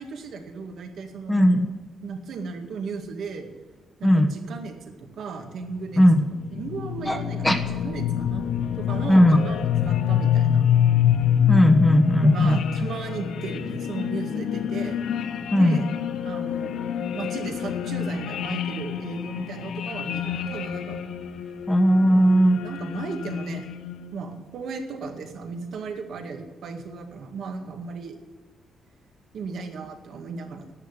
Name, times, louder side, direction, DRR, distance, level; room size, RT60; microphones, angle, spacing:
voice 1, 0.0-1.5 2.0-3.5 4.0-6.0 6.6-8.4 8.8-10.6 12.2-15.0 15.5-15.9 16.2-16.9 17.1-21.0 22.0-22.3 22.6-23.7 24.1-28.2 29.3-30.7, right 4 dB, 70° right, 4 dB, 2.0 m, -35 dB
voice 2, 1.3-1.7 4.0-4.3 6.0-6.2 7.1-7.2 7.4-7.6 9.1-9.4 11.5-12.6 15.5-15.9 21.7-22.6, equal, 10° left, 5 dB, 1.2 m, -17 dB
sound 1, 5.8-24.2, left 9 dB, 80° left, 0.8 m, -26 dB
11.0 x 9.0 x 9.7 m, 1.4 s
cardioid pair, 120°, 0 cm